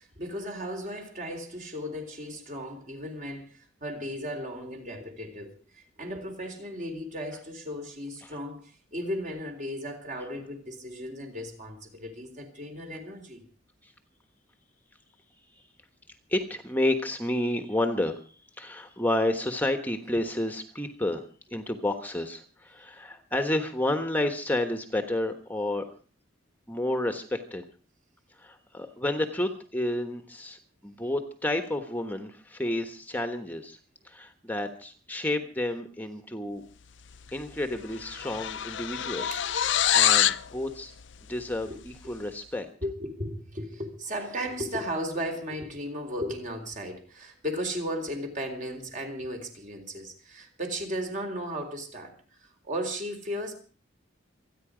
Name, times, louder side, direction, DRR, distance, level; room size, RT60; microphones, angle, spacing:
voice 1, 0.0-13.4 39.3-39.4 41.7-41.8 42.0-42.1 42.8-53.5, equal, 40° right, 4 dB, 3.8 m, -35 dB
voice 2, 16.3-21.3 21.5-25.9 26.7-27.6 28.3-33.8 34.0-36.6 37.3-39.4 39.9-40.9 41.3-42.7, left 1 dB, 10° left, 7 dB, 1.2 m, -30 dB
sound 1, 37.3-37.5 37.8-40.5, left 11 dB, 70° left, 0.7 m, -25 dB
26.5 x 9.9 x 5.0 m, 0.40 s
head